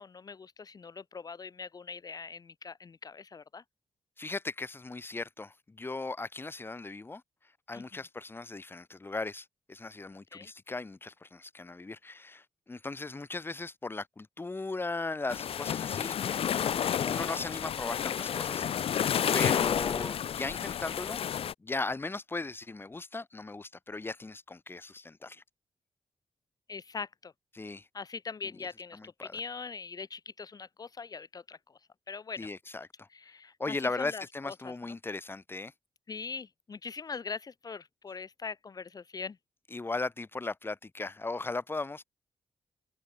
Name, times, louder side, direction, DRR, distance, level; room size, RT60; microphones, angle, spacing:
voice 1, 0.0-3.6 7.7-7.8 10.3-10.5 19.9-20.1 26.7-27.3 27.9-31.6 32.1-32.5 33.1-34.7 36.1-39.4, left 5 dB, 40° left, 1.3 m, -42 dB
voice 2, 4.2-7.2 7.7-18.7 19.3-21.2 21.6-25.4 27.5-27.9 28.9-29.4 32.4-33.1 33.6-35.7 39.7-42.0, left 3 dB, 20° left, 1.8 m, -37 dB
sound 1, 15.3-21.5, left 9 dB, 75° left, 1.5 m, -30 dB
cardioid pair, 105°, 10 cm